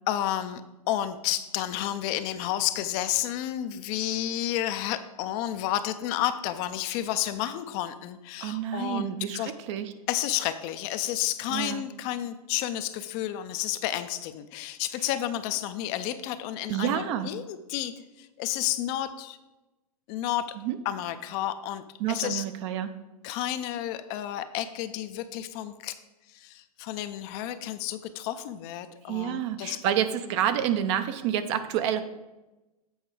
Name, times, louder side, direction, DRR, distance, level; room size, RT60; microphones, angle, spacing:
voice 1, 0.1-0.6 0.9-9.5 10.1-17.9 18.2-19.4 20.1-20.6 20.9-22.4 23.2-26.0 26.3-29.8, left 12 dB, 40° left, 10 dB, 0.5 m, -31 dB
voice 2, 8.4-9.9 11.5-11.8 16.7-17.3 20.6-20.8 22.0-22.9 29.1-32.0, right 10 dB, 50° right, 10 dB, 0.6 m, -28 dB
7.9 x 4.4 x 4.8 m, 1.0 s
hypercardioid pair, 115°, 20 cm